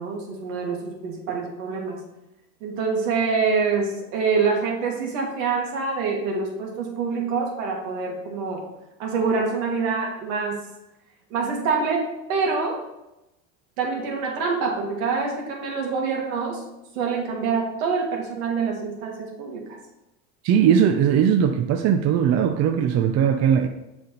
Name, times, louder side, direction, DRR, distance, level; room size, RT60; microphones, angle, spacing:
voice 1, 0.0-2.0 2.6-8.6 9.0-10.6 11.3-12.8 13.8-16.6 17.0-19.8, right 5 dB, 70° right, 0 dB, 2.3 m, -26 dB
voice 2, 20.4-23.7, right 8 dB, 40° right, 6 dB, 0.6 m, -19 dB
7.1 x 5.3 x 3.9 m, 0.93 s
supercardioid pair, 110°, 41 cm